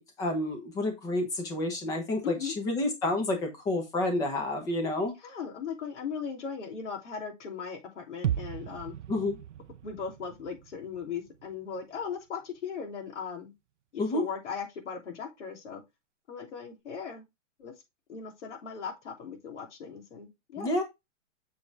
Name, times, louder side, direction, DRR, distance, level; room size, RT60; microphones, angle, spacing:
voice 1, 0.0-5.1 9.1-9.4 14.0-14.2 20.6-20.8, left 2 dB, 10° left, 1.0 m, -29 dB
voice 2, 2.2-2.5 5.2-8.9 9.8-13.5 13.9-15.8 16.3-17.2 17.6-17.7 18.1-20.8, left 6 dB, 65° left, 3.1 m, -38 dB
sound 1, 8.2-12.2 12.5-12.6, right 11 dB, 70° right, 0.7 m, -37 dB
6.7 x 4.7 x 3.4 m
hypercardioid pair, 170°, 38 cm